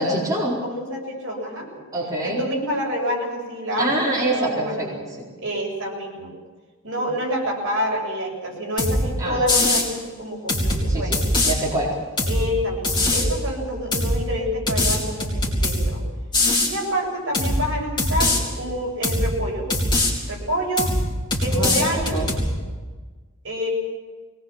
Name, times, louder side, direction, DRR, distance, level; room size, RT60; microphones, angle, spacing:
voice 1, 0.0-0.6 1.9-2.4 3.8-5.3 9.2-9.4 10.9-11.2 11.4-11.9 21.5-22.3, right 1 dB, 15° right, -6 dB, 4.3 m, -25 dB
voice 2, 0.6-1.8 2.2-5.0 5.4-6.3 6.8-11.3 12.3-16.0 16.6-19.7 20.3-20.9 21.4-22.2 23.4-23.7, equal, 60° right, -1 dB, 7.3 m, -27 dB
sound 1, 8.8-9.0 9.5-9.9 10.5-11.5 12.2-12.4 12.8-13.3 13.9-14.2 14.7-15.9 16.3-16.7 17.3-17.6 18.0-18.4 19.0-19.3 19.7-20.1 20.8-21.0 21.3-22.5, left 1 dB, 20° left, 4.4 m, -21 dB
23.0 x 19.5 x 7.4 m, 1.4 s
head